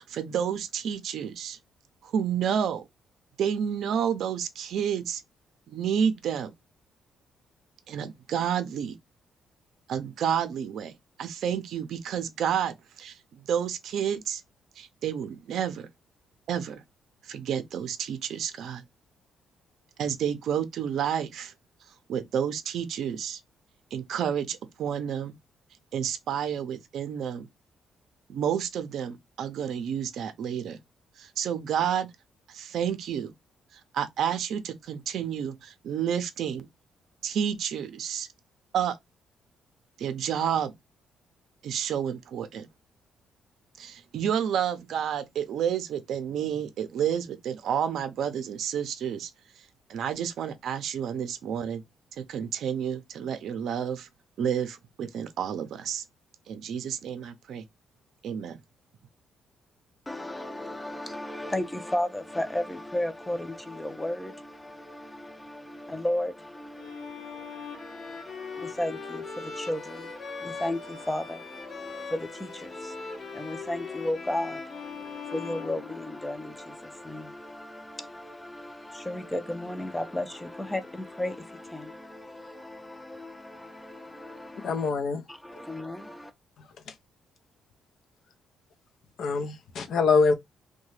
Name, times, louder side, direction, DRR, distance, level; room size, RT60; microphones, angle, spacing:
voice 1, 0.0-1.6 2.0-2.8 3.4-5.2 5.7-6.5 7.9-9.0 9.9-10.9 11.2-14.4 14.8-15.9 16.5-16.8 17.2-18.8 20.0-21.5 22.1-23.4 23.9-25.3 25.9-27.5 28.3-30.8 31.2-32.1 32.5-33.3 33.9-36.7 37.2-38.3 38.7-39.0 40.0-40.7 41.6-42.7 43.8-49.3 49.9-51.8 52.2-54.1 54.4-56.0 56.5-57.6 58.2-58.6, right 8 dB, 70° right, 0.5 m, -30 dB
voice 2, 60.1-84.9 85.3-86.3, left 1 dB, 10° left, 0.5 m, -35 dB
Bowed string instrument, 66.8-76.5, left 5 dB, 45° left, 0.8 m, -40 dB
voice 3, 84.6-85.2 89.2-90.3, left 4 dB, 65° left, 0.5 m, -24 dB
2.7 x 2.2 x 3.1 m
cardioid pair, 90°, 0 cm